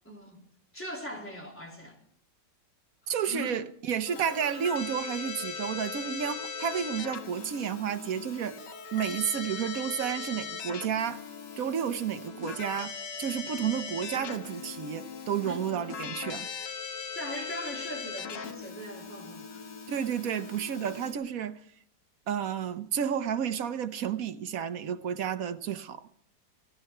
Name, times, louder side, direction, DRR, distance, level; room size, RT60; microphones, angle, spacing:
voice 1, 0.1-0.4 0.7-2.0 3.0-3.6 15.4-15.6 17.2-19.7, left 1 dB, 5° left, 3.3 m, -40 dB
voice 2, 3.1-8.6 8.9-11.2 11.6-16.5 19.9-21.6 22.3-26.1, right 8 dB, 60° right, 1.1 m, -31 dB
Keyboard (musical), 4.1-21.1, left 6 dB, 70° left, 2.0 m, -39 dB
18.0 x 14.5 x 4.4 m
omnidirectional pair, 2.0 m